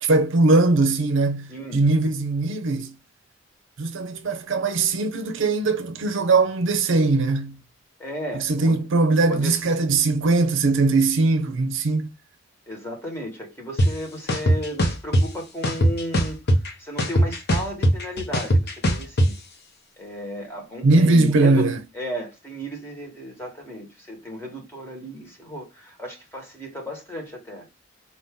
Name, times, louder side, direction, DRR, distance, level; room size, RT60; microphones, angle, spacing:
voice 1, 0.0-2.9 3.8-7.6 8.3-12.1 20.8-21.8, right 3 dB, 65° right, 0.6 m, -20 dB
voice 2, 8.0-8.8 9.3-9.6 12.7-16.4 16.8-19.3 20.0-27.7, equal, 10° left, 1.5 m, -34 dB
sound 1, 13.8-13.9 14.3-15.2 15.6-16.7 17.0-19.3, equal, 55° left, 1.0 m, -19 dB
4.3 x 2.8 x 3.6 m
head